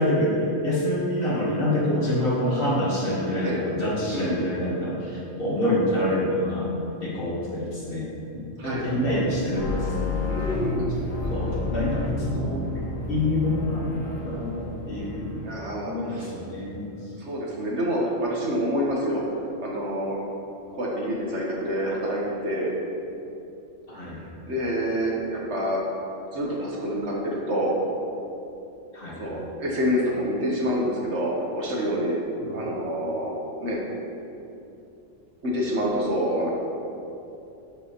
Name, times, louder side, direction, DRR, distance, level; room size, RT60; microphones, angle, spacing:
voice 1, 0.0-6.7 7.0-8.1 8.3-10.3 11.0-15.5 15.8-17.0 23.9-24.2 28.9-29.2 32.4-32.6, left 1 dB, 45° left, -6 dB, 1.7 m, -27 dB
voice 2, 4.1-4.4 8.6-8.9 10.3-10.9 11.2-11.5 15.4-16.3 17.2-19.2 19.6-20.2 20.7-22.7 24.1-25.8 26.3-27.7 29.2-32.2 32.4-33.3 33.6-33.8 35.4-36.5, equal, 60° right, -3 dB, 1.5 m, -27 dB
sound 1, 8.7-15.7, left 2 dB, 85° left, 1.6 m, -31 dB
11.5 x 5.4 x 3.0 m, 2.8 s
omnidirectional pair, 1.3 m